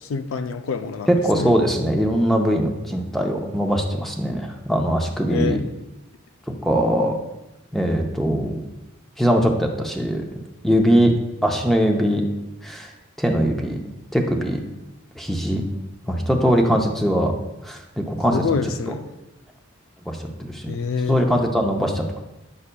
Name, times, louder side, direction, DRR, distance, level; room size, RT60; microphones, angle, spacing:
voice 1, 0.0-1.5 5.3-5.6 18.3-19.1 20.7-21.2, left 5 dB, 75° left, 8 dB, 0.4 m, -26 dB
voice 2, 1.1-5.6 6.6-7.2 7.7-8.6 9.2-10.2 10.6-11.1 11.4-12.2 12.6-12.9 13.2-13.8 14.1-14.6 15.2-15.6 16.1-17.3 17.6-18.4 20.1-20.7 21.1-22.2, equal, ahead, 2 dB, 0.5 m, -21 dB
9.7 x 5.4 x 2.2 m, 0.97 s
head